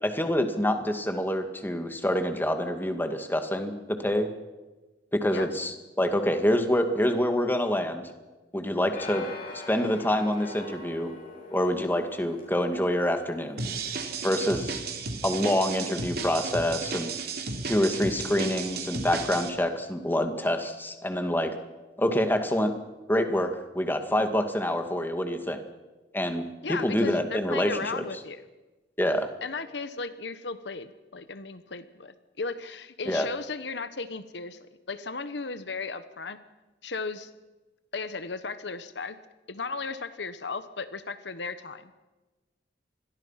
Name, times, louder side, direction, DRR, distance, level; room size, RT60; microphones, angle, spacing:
voice 1, 0.0-4.3 5.1-8.0 8.5-9.3 9.7-11.1 11.5-13.6 14.2-14.8 15.2-17.1 17.7-21.5 22.0-22.7 23.1-25.6 26.1-26.4 26.7-28.0 29.0-29.3 33.1-33.3, left 1 dB, 10° left, 7 dB, 2.1 m, -26 dB
sound 1, 8.9-14.0, left 3 dB, 50° left, 8.0 m, -43 dB
sound 2, 13.6-19.5, right 4 dB, 60° right, 3.1 m, -34 dB
voice 2, 26.6-28.4 29.4-34.6 34.9-36.4 36.8-37.3 37.9-39.2 39.5-41.9, left 4 dB, 70° left, 12 dB, 1.1 m, -35 dB
27.5 x 21.5 x 5.8 m, 1.2 s
head